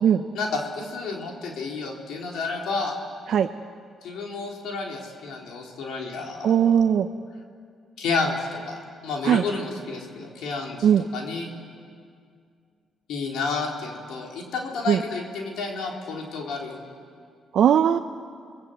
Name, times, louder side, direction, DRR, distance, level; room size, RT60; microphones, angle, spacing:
voice 1, 0.3-2.9 4.0-6.8 8.0-11.5 13.1-16.8, left 4 dB, 80° left, 0 dB, 4.0 m, -31 dB
voice 2, 6.4-7.1 9.2-9.4 10.8-11.0 14.9-15.0 17.5-18.0, right 9 dB, 65° right, 6 dB, 0.7 m, -19 dB
28.5 x 20.0 x 8.2 m, 2.2 s
cardioid pair, 90°, 0 cm